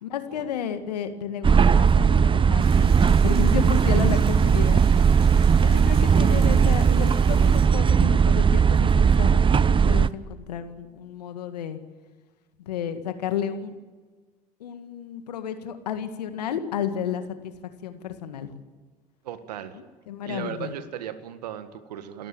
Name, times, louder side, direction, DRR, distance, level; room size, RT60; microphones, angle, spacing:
voice 1, 0.0-4.8 5.6-11.8 12.6-13.7 14.6-17.5 17.8-18.5 19.7-20.7, left 8 dB, 85° left, 9 dB, 1.9 m, -32 dB
sound 1, 1.4-10.1, right 6 dB, 25° right, 0.8 m, -18 dB
sound 2, 2.6-7.6, right 4 dB, 55° right, 7.5 m, -40 dB
voice 2, 19.2-19.8 20.2-22.3, right 10 dB, 85° right, 11 dB, 1.8 m, -37 dB
29.0 x 13.5 x 8.8 m, 1.4 s
hypercardioid pair, 75°, 20 cm